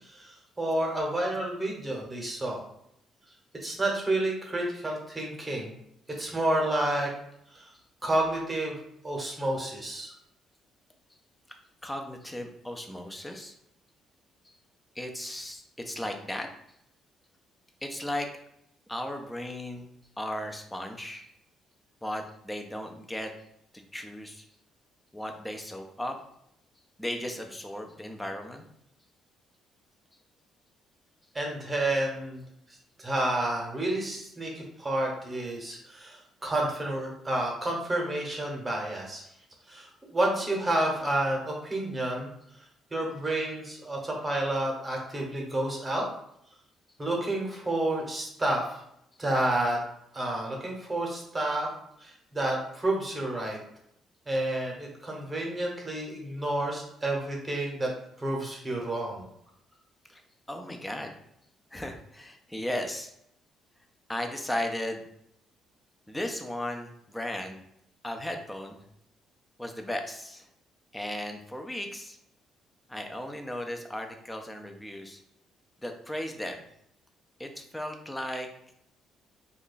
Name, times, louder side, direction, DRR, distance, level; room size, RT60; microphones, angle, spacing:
voice 1, 0.0-2.6 3.6-5.7 6.2-7.1 7.5-7.7 8.0-8.7 9.0-10.1 31.3-32.4 33.0-39.2 39.7-42.3 42.6-42.7 42.9-46.1 47.0-48.8 49.2-49.8 50.1-51.7 52.0-53.6 54.3-57.9 58.2-59.3, right 1 dB, 20° right, -1 dB, 0.9 m, -30 dB
voice 2, 11.8-13.5 14.4-14.5 15.0-16.5 17.8-18.3 18.9-19.9 20.2-21.3 22.0-23.3 23.9-24.5 25.1-26.2 27.0-28.6 60.1-60.2 60.5-61.1 61.7-63.1 64.1-65.0 66.1-67.6 68.0-68.8 69.6-70.5 70.9-72.2 72.9-75.2 75.8-76.6 77.4-78.5, left 1 dB, 5° left, 4 dB, 0.5 m, -36 dB
2.9 x 2.3 x 3.9 m, 0.75 s
cardioid pair, 120°, 0 cm